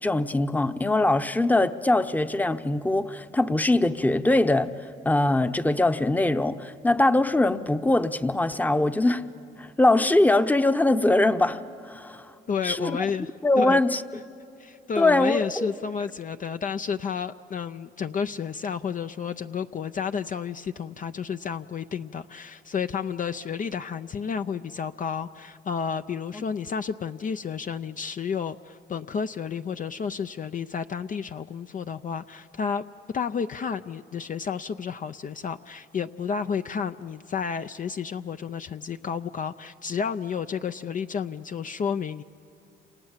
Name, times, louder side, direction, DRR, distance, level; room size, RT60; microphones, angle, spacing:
voice 1, 0.0-4.7 5.0-9.2 9.6-12.3 12.6-13.0 13.4-14.2 15.0-15.7 26.3-26.4, left 2 dB, 10° left, 10 dB, 0.9 m, -22 dB
voice 2, 12.5-13.8 14.6-32.8 33.1-42.2, left 6 dB, 40° left, 9 dB, 0.6 m, -31 dB
28.5 x 28.0 x 7.4 m, 2.6 s
cardioid pair, 90°, 20 cm